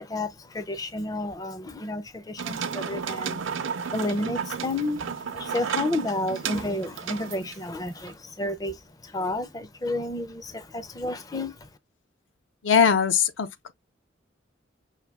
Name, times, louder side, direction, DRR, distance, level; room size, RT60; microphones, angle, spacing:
voice 1, 0.0-3.4 3.8-11.7, left 2 dB, 20° left, 0.4 m, -31 dB
sound 1, 2.4-8.1, right 6 dB, 80° right, 0.6 m, -33 dB
voice 2, 12.6-13.7, left 7 dB, 75° left, 0.6 m, -21 dB
5.7 x 2.2 x 3.4 m
head